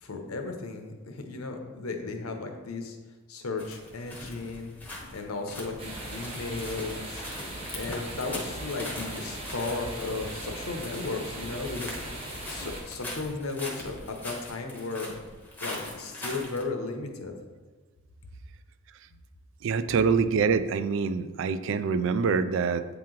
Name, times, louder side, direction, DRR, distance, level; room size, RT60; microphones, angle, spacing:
voice 1, 0.0-3.0 3.3-4.7 5.1-12.0 12.5-15.1 15.6-17.3, left 3 dB, 80° left, 4 dB, 0.8 m, -35 dB
sound 1, 3.6-16.6, left 1 dB, 10° left, 0.8 m, -42 dB
sound 2, 5.8-12.8, right 1 dB, 25° right, 0.9 m, -39 dB
voice 2, 19.6-22.9, right 5 dB, 60° right, 13 dB, 0.3 m, -25 dB
8.3 x 2.9 x 3.8 m, 1.3 s
head